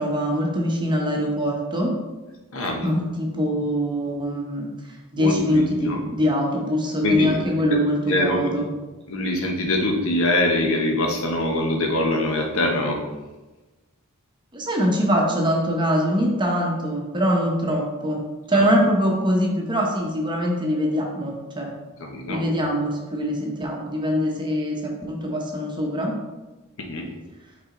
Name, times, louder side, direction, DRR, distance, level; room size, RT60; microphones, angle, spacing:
voice 1, 0.0-1.9 2.8-8.7 14.5-18.2 18.5-21.7 22.3-26.1, equal, 20° right, 0 dB, 0.9 m, -23 dB
voice 2, 2.5-2.8 5.2-6.0 7.0-7.7 8.1-8.5 9.1-13.0 18.5-18.7 22.0-22.4 26.8-27.1, left 1 dB, 65° left, 1 dB, 1.0 m, -24 dB
5.9 x 4.1 x 3.8 m, 1.2 s
head